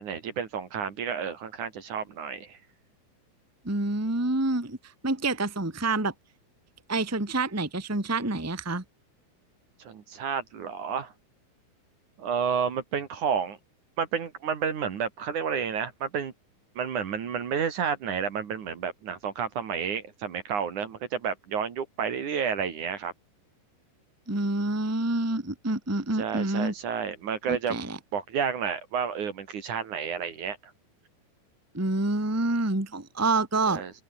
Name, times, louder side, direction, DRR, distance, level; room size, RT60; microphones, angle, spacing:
voice 1, 0.0-2.6 9.8-11.1 12.2-13.6 14.0-16.3 16.8-23.1 26.1-27.8 28.1-30.7 33.7-33.9, right 7 dB, 50° right, 3.0 m, -30 dB
voice 2, 3.6-4.8 5.0-6.1 6.9-8.8 24.3-26.7 27.5-28.0 31.7-33.8, right 2 dB, 20° right, 0.4 m, -27 dB
open air
omnidirectional pair, 5.7 m